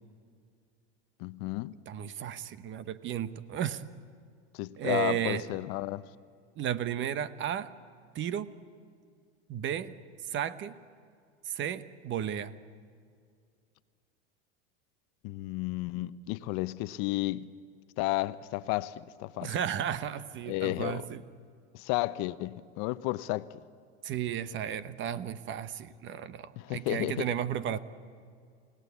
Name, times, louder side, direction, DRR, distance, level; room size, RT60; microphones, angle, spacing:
voice 1, 1.2-1.7 4.5-6.1 15.2-17.5 18.0-19.6 20.5-21.0 21.7-23.5 26.6-27.3, left 18 dB, 50° left, 0.8 m, -32 dB
voice 2, 1.9-3.8 4.8-5.4 6.6-7.7 8.1-8.5 9.5-9.9 10.3-10.8 11.4-12.5 19.4-21.2 24.0-27.8, right 10 dB, 35° right, 1.0 m, -33 dB
29.0 x 17.5 x 8.3 m
supercardioid pair, 120°, 35 cm